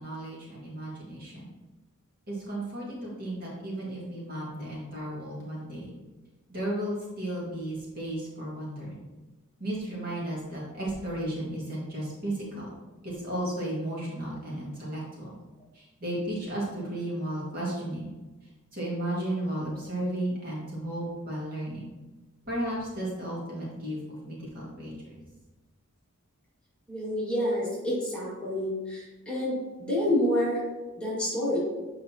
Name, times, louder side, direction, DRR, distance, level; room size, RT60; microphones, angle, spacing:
voice 1, 0.0-1.5 2.3-5.9 6.5-8.9 9.6-12.7 13.0-15.3 15.7-18.2 18.7-21.9 22.5-25.2, right 1 dB, 45° right, -5 dB, 2.0 m, -34 dB
voice 2, 26.9-30.6 31.0-31.6, left 1 dB, 5° left, -8 dB, 2.0 m, -28 dB
7.9 x 5.1 x 2.9 m, 1.2 s
head